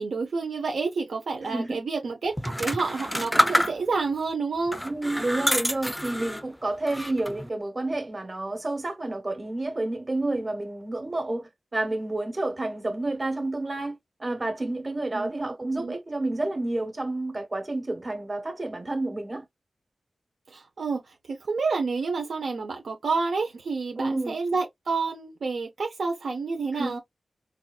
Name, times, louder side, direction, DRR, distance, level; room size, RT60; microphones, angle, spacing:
voice 1, 0.0-4.8 15.1-15.3 15.8-15.9 20.5-27.0, right 4 dB, 80° right, 0.8 m, -29 dB
voice 2, 1.4-1.8 4.8-19.4 24.0-24.4 26.7-27.0, right 2 dB, 40° right, 1.3 m, -30 dB
sound 1, 2.4-4.1 4.7-6.5 6.9-7.5, equal, 5° left, 0.4 m, -27 dB
3.9 x 2.6 x 2.4 m
cardioid pair, 55°, 0 cm